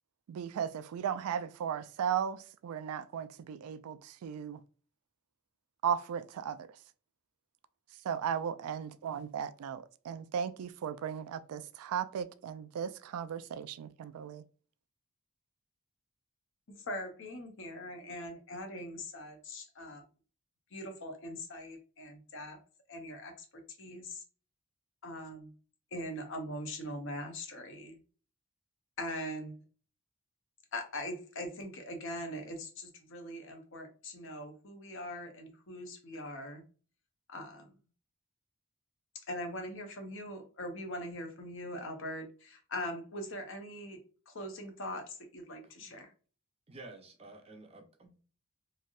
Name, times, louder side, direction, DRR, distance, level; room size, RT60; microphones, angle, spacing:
voice 1, 0.3-4.6 5.8-6.7 8.0-14.4, right 8 dB, 80° right, 0.3 m, -36 dB
voice 2, 16.7-20.0 20.7-22.6 22.9-23.4 23.8-24.2 25.0-25.5 25.9-28.0 29.0-29.6 30.7-36.6 37.3-37.7 39.3-44.0 44.3-46.1, left 1 dB, 60° left, 0.7 m, -41 dB
voice 3, 45.6-46.0 46.7-48.2, right 2 dB, 25° right, 0.5 m, -52 dB
3.2 x 2.6 x 2.4 m
head